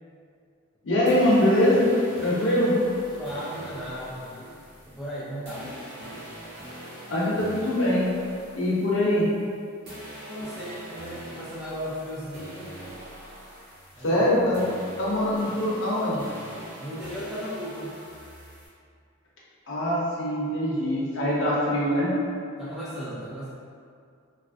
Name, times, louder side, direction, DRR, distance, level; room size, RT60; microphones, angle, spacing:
voice 1, 0.8-1.9 2.2-2.8 7.1-8.1 8.6-9.3 14.0-14.6 15.0-16.2 19.7-22.1, left 1 dB, 60° left, -6 dB, 0.6 m, -23 dB
sound 1, 1.1-9.6 9.9-18.7, equal, 50° right, 0.9 m, -43 dB
voice 2, 3.1-4.5 4.8-6.3 10.3-12.8 13.9-14.2 16.8-18.0 22.6-23.5, equal, 5° right, -9 dB, 0.3 m, -36 dB
3.1 x 2.4 x 2.5 m, 2.3 s
head